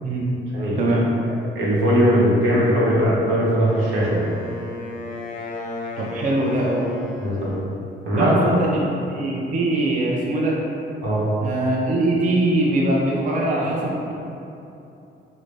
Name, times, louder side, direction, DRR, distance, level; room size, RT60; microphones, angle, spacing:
voice 1, 0.5-0.9 1.2-4.3 7.2-7.5 8.0-8.3 8.6-8.7 11.0-11.3, equal, 85° right, -6 dB, 0.9 m, -20 dB
Wind instrument woodwind instrument, 3.6-7.8, left 2 dB, 40° left, 0.4 m, -34 dB
voice 2, 6.0-6.9 8.2-10.6 11.4-14.1, right 1 dB, 40° right, -3 dB, 0.5 m, -22 dB
3.8 x 2.0 x 3.2 m, 2.8 s
cardioid pair, 90°, 20 cm